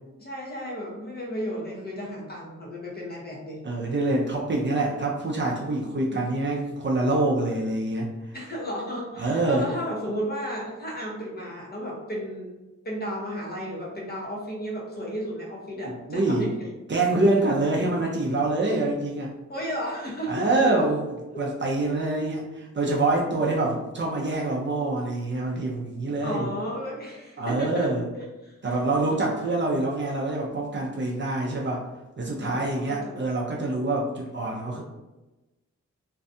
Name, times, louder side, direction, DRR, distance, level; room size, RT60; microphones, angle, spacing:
voice 1, 0.2-3.6 8.3-12.6 12.8-16.7 19.5-20.7 21.3-21.5 22.8-23.0 26.2-27.9 28.2-28.8 32.4-33.2, equal, 35° left, -3 dB, 0.7 m, -34 dB
voice 2, 3.6-8.1 9.2-9.7 15.8-16.5 16.9-19.3 20.3-26.5 27.4-28.1 28.6-31.8 32.2-34.8, right 2 dB, 40° right, -2 dB, 0.4 m, -25 dB
2.6 x 2.2 x 2.5 m, 1.1 s
wide cardioid pair, 145°, 29 cm